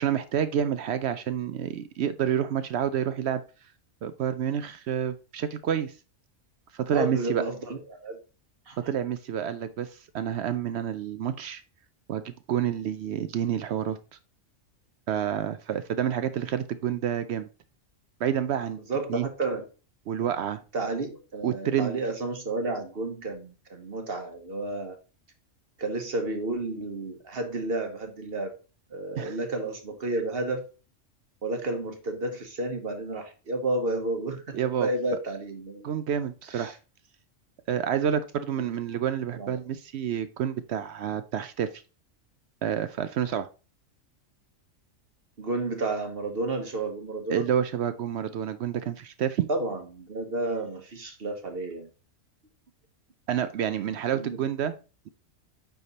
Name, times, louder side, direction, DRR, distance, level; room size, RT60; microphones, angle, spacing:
voice 1, 0.0-3.4 4.0-5.9 6.7-7.4 8.9-11.6 12.1-14.0 15.1-17.5 18.2-18.8 19.1-19.3 20.1-20.6 21.4-21.9 29.2-29.3 34.5-34.9 35.8-36.7 37.7-41.7 42.6-43.5 47.3-49.5 53.3-54.7, right 9 dB, 65° right, 12 dB, 0.7 m, -28 dB
voice 2, 6.9-8.2 8.7-8.8 18.9-19.6 20.7-25.0 25.8-28.5 28.9-30.7 31.4-35.9 36.5-36.8 39.3-39.6 45.4-47.5 49.5-51.9 54.1-54.4, right 2 dB, 50° right, 6 dB, 1.3 m, -31 dB
9.4 x 3.5 x 4.1 m, 0.33 s
omnidirectional pair, 1.3 m